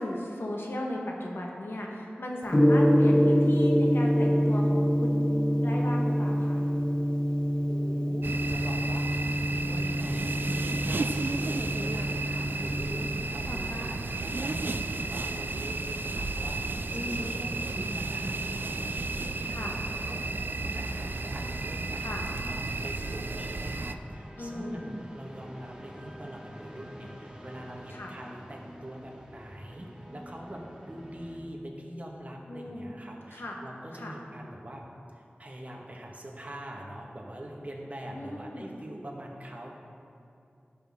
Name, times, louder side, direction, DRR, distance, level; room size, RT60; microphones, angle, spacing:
voice 1, 0.0-5.4 5.6-6.7 12.6-13.1 13.4-13.9 16.9-17.4 19.5-19.8 21.9-22.3 24.4-24.9 27.9-28.1 32.5-32.9 33.3-33.6 33.9-34.1 38.1-38.7, left 1 dB, 85° left, -1 dB, 1.5 m, -37 dB
Gong, 2.5-13.2, equal, 25° left, 0.6 m, -25 dB
voice 2, 7.6-22.0 22.5-34.8 35.1-39.7, right 1 dB, 40° right, -1 dB, 1.6 m, -43 dB
sound 1, 8.2-23.9, right 3 dB, 65° right, 0.4 m, -33 dB
sound 2, 21.1-31.4, equal, 20° right, 1.5 m, -48 dB
15.5 x 6.2 x 3.7 m, 2.6 s
wide cardioid pair, 60°, 4 cm